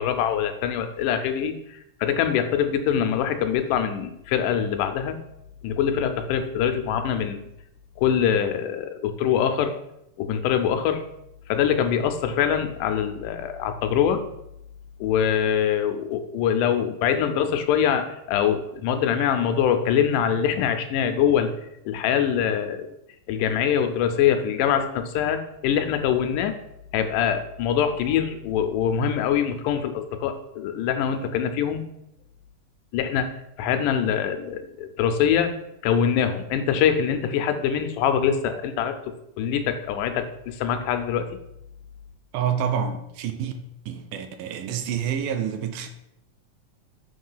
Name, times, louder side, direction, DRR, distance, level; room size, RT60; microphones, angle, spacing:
voice 1, 0.0-5.2 5.6-7.5 8.0-9.8 10.2-11.0 11.5-14.2 15.0-21.5 21.9-22.9 23.3-26.6 26.9-31.8 32.9-33.3 33.6-35.5 35.8-39.0 39.4-41.3, left 8 dB, 80° left, 7 dB, 2.1 m, -24 dB
voice 2, 42.3-43.5 43.9-45.9, right 8 dB, 80° right, 7 dB, 2.1 m, -28 dB
7.3 x 3.2 x 5.4 m, 0.80 s
omnidirectional pair, 3.8 m